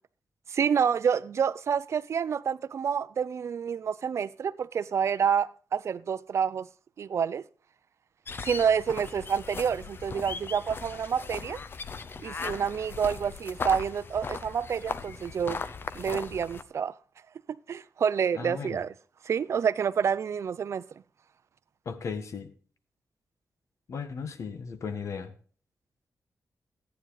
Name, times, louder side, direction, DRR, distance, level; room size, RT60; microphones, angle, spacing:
voice 1, 0.5-6.7 7.0-7.4 8.4-11.6 12.2-15.6 15.9-17.0 17.7-18.9 19.2-20.8, right 7 dB, 60° right, 0.5 m, -28 dB
sound 1, 8.3-16.6, left 5 dB, 40° left, 0.7 m, -38 dB
voice 2, 18.3-18.8 21.8-22.5 23.9-25.3, left 5 dB, 65° left, 1.5 m, -36 dB
14.5 x 9.5 x 4.0 m
wide cardioid pair, 150°, 6 cm